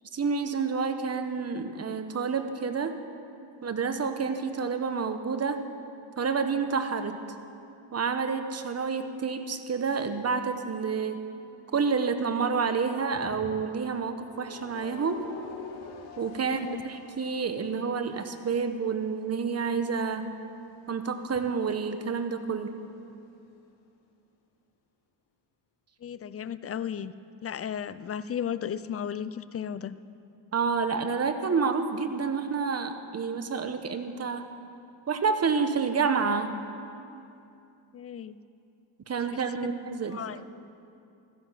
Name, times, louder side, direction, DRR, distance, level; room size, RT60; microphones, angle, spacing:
voice 1, 0.1-3.0 3.6-5.6 6.2-7.2 7.9-11.2 11.7-15.2 16.2-20.3 20.9-22.7 30.5-34.5 35.1-36.6 39.1-40.2, right 5 dB, 30° right, 8 dB, 1.2 m, -29 dB
sound 1, 9.7-12.5 12.9-23.4, left 5 dB, 75° left, 2.3 m, -50 dB
voice 2, 16.4-16.9 26.0-27.1 27.4-30.0 37.9-38.4 39.3-39.4 40.1-40.4, left 8 dB, 30° left, 15 dB, 0.6 m, -35 dB
16.0 x 14.0 x 5.8 m, 2.6 s
cardioid pair, 90°, 47 cm